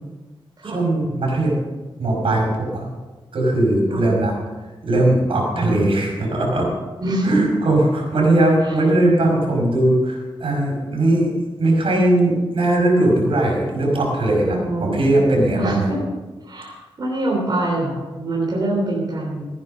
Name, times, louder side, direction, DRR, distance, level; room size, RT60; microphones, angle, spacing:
voice 1, 0.6-1.6 2.0-2.9 3.3-4.3 4.8-6.8 7.2-11.3 11.6-15.9, right 1 dB, 75° right, -2 dB, 5.6 m, -19 dB
voice 2, 7.0-7.5 8.6-8.7 14.4-15.1 15.6-16.0 16.4-19.5, right 1 dB, 45° right, -4 dB, 3.4 m, -24 dB
16.0 x 9.8 x 5.4 m, 1.2 s
wide cardioid pair, 130°, 9 cm